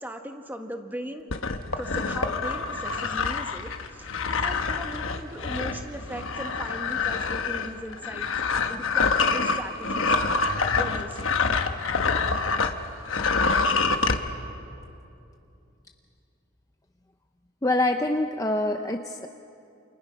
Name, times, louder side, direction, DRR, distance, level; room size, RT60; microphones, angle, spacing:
voice 1, 0.0-1.3 1.8-11.3, equal, 10° right, 5 dB, 1.4 m, -39 dB
sound 1, 1.3-12.8 13.0-14.2, left 4 dB, 70° left, 1.2 m, -26 dB
voice 2, 17.6-19.3, left 2 dB, 15° left, 5 dB, 0.6 m, -25 dB
29.5 x 29.0 x 5.7 m, 2.7 s
head